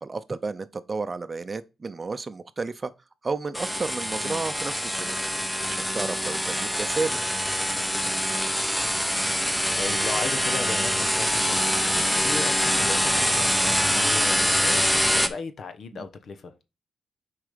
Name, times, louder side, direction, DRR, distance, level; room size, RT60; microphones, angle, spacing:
voice 1, 0.0-2.9 3.2-5.2 5.6-7.2 15.9-16.1, right 4 dB, 35° right, 0.6 m, -32 dB
sound 1, 3.5-15.3, equal, 5° left, 1.0 m, -24 dB
voice 2, 9.8-11.8 12.2-16.5, left 4 dB, 65° left, 1.0 m, -36 dB
6.3 x 4.9 x 5.1 m
cardioid pair, 80°, 0 cm